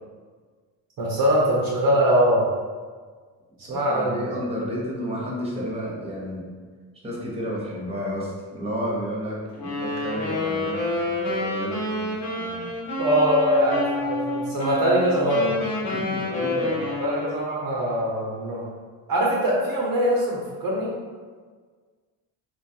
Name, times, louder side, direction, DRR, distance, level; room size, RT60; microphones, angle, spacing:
voice 1, 1.0-2.4 3.7-4.2 13.0-15.5 17.0-18.6 19.1-20.9, equal, 50° right, -3 dB, 0.7 m, -22 dB
voice 2, 3.6-6.5 7.0-12.7 15.8-16.8, equal, 15° right, -4 dB, 0.9 m, -32 dB
Wind instrument woodwind instrument, 9.5-17.5, left 2 dB, 90° left, 1.0 m, -28 dB
3.0 x 2.3 x 2.7 m, 1.5 s
supercardioid pair, 65°, 43 cm